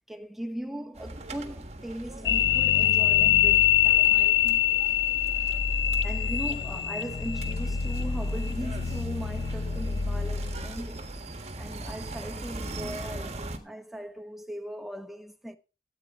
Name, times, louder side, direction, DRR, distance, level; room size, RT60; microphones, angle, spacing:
voice 1, 0.1-4.7 6.0-11.2 11.6-15.6, equal, ahead, 0.9 m, -39 dB
sound 1, 0.9-13.6, right 2 dB, 35° right, 1.4 m, -40 dB
sound 2, 2.3-10.8, left 9 dB, 70° left, 0.5 m, -24 dB
13.5 x 8.2 x 4.5 m
head